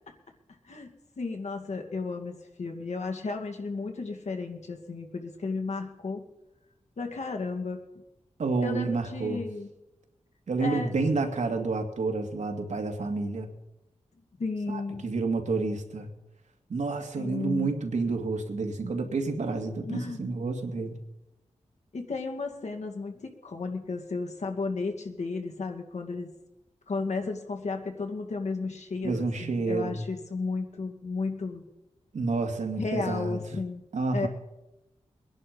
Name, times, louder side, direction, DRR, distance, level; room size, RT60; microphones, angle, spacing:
voice 1, 0.6-2.3 2.6-6.3 7.0-7.8 8.6-9.7 10.6-10.9 14.4-15.1 17.2-17.8 19.8-20.3 21.9-26.3 26.9-31.6 32.8-33.8 34.1-34.3, left 4 dB, 70° left, 3 dB, 2.5 m, -33 dB
voice 2, 8.4-9.4 10.5-13.5 14.7-16.1 16.7-21.0 29.0-30.0 32.1-33.4 33.9-34.3, right 3 dB, 80° right, 4 dB, 2.4 m, -29 dB
22.0 x 11.0 x 5.3 m, 0.95 s
cardioid pair, 65°, 12 cm